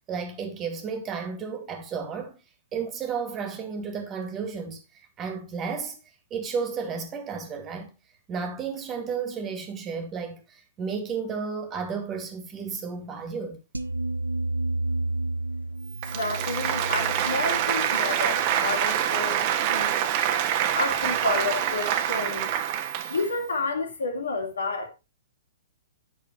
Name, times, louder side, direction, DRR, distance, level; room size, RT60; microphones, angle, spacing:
voice 1, 0.1-2.4 2.7-4.8 5.2-6.0 6.3-7.9 8.3-13.6, right 5 dB, 20° right, 2.2 m, -32 dB
sound 1, 13.7-19.0, right 2 dB, 80° right, 0.9 m, -32 dB
Applause, 15.9-23.4, right 10 dB, 35° right, 1.3 m, -26 dB
voice 2, 16.1-20.1 20.7-22.5 23.1-24.9, left 3 dB, 65° left, 2.5 m, -30 dB
9.8 x 6.3 x 4.3 m
figure-of-eight pair, 115°, 0 cm